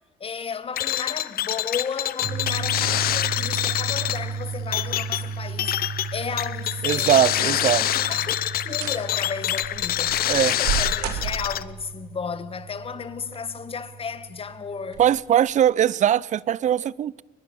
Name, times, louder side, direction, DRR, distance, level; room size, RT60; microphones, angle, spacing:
voice 1, 0.2-5.8 6.1-15.0, left 6 dB, 35° left, 1.7 m, -34 dB
sound 1, 0.8-11.6, left 13 dB, 60° left, 0.8 m, -26 dB
sound 2, 2.2-15.1, right 5 dB, 70° right, 5.7 m, -35 dB
voice 2, 6.8-7.9 10.3-10.6 15.0-17.2, right 10 dB, 45° right, 0.6 m, -21 dB
sound 3, 7.9-8.4 8.7-9.0 9.6-11.8 13.0-13.6 14.0-14.1 14.9-15.1 15.5-15.6, right 9 dB, 90° right, 2.8 m, -32 dB
22.5 x 21.0 x 7.2 m
cardioid pair, 110°, 17 cm